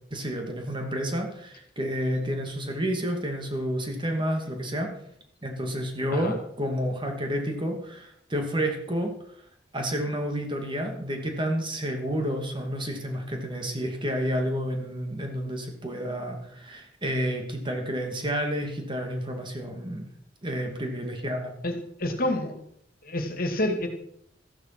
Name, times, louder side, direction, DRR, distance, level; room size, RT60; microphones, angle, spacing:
voice 1, 0.1-4.9 5.4-9.1 9.7-20.1 20.4-21.5, equal, 25° right, 3 dB, 2.6 m, -30 dB
voice 2, 21.6-22.5 23.0-23.9, left 1 dB, 50° left, 6 dB, 2.4 m, -28 dB
14.0 x 11.5 x 6.1 m, 0.69 s
head